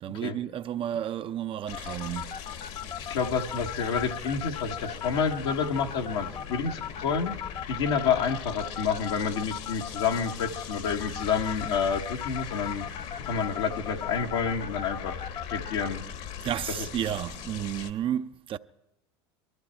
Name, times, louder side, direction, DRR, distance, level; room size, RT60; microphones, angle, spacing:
voice 1, 0.0-2.4 16.4-18.6, right 10 dB, 40° right, 0.5 m, -32 dB
sound 1, 1.7-17.9, left 8 dB, 55° left, 1.2 m, -40 dB
sound 2, 1.7-15.9, left 8 dB, 30° left, 0.6 m, -37 dB
voice 2, 3.0-7.3 7.7-12.9 13.2-15.2 15.5-16.0, left 6 dB, 80° left, 1.3 m, -29 dB
21.5 x 13.0 x 4.4 m
hypercardioid pair, 90°, 14 cm